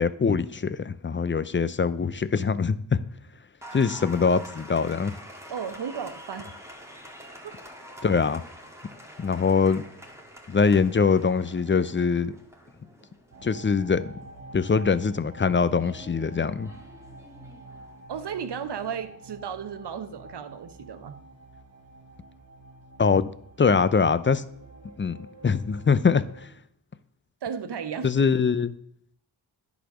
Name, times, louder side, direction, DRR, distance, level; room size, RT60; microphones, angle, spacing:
voice 1, 0.0-3.0 3.7-5.2 8.0-8.4 9.2-9.8 10.5-12.4 13.4-14.1 14.5-16.7 23.0-23.3 23.6-24.4 25.0-25.2 25.4-26.5 28.0-28.8, left 5 dB, 25° left, 15 dB, 0.5 m, -23 dB
Applause, 3.6-18.9, equal, 5° right, 1.9 m, -47 dB
voice 2, 5.5-6.5 7.4-7.6 18.1-21.2 27.4-28.1, right 7 dB, 60° right, 11 dB, 0.9 m, -34 dB
sound 1, 13.3-26.5, right 2 dB, 35° right, 1.1 m, -48 dB
10.0 x 4.1 x 6.1 m, 0.67 s
cardioid pair, 50°, 47 cm